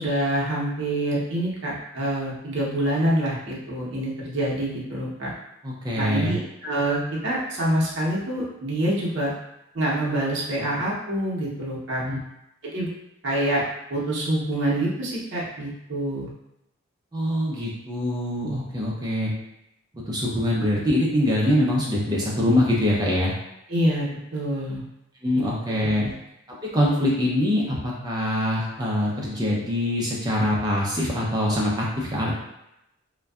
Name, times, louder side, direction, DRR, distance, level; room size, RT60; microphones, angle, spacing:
voice 1, 0.0-5.3 6.0-9.3 9.7-12.0 12.6-12.9 13.2-13.6 13.9-16.3 23.7-24.8 25.3-26.1, right 1 dB, 55° right, -5 dB, 0.7 m, -26 dB
voice 2, 5.6-6.4 12.0-12.2 17.1-19.3 20.1-23.3 25.2-26.0 26.7-32.4, left 1 dB, 20° right, -4 dB, 0.4 m, -24 dB
2.6 x 2.2 x 2.3 m, 0.85 s
head